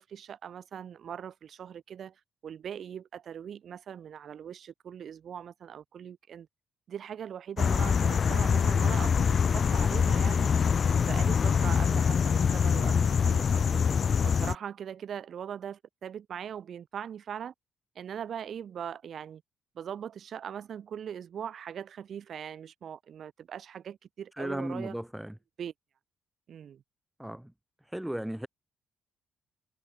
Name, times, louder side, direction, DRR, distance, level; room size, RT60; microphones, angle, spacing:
voice 1, 0.0-6.5 6.9-10.5 10.8-13.9 14.2-17.5 17.9-19.4 19.7-25.0 25.6-25.7 26.5-26.8, right 8 dB, 60° right, 4.8 m, -40 dB
sound 1, 7.6-14.5, left 6 dB, 45° left, 1.1 m, -24 dB
voice 2, 24.4-25.3 27.2-27.5 27.9-28.5, right 1 dB, 5° right, 1.8 m, -35 dB
cardioid pair, 90°, 0 cm